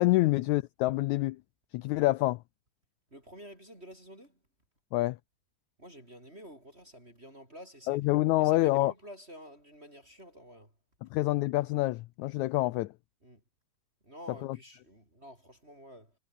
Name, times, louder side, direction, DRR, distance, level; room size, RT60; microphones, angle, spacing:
voice 1, 0.0-1.4 1.7-2.4 4.9-5.2 7.9-8.9 11.0-12.9 14.4-14.6, left 18 dB, 85° left, 1.6 m, -27 dB
voice 2, 3.1-4.4 5.8-8.1 8.4-10.7 13.2-13.4 14.0-16.2, equal, 15° right, 5.8 m, -50 dB
omnidirectional pair, 4.0 m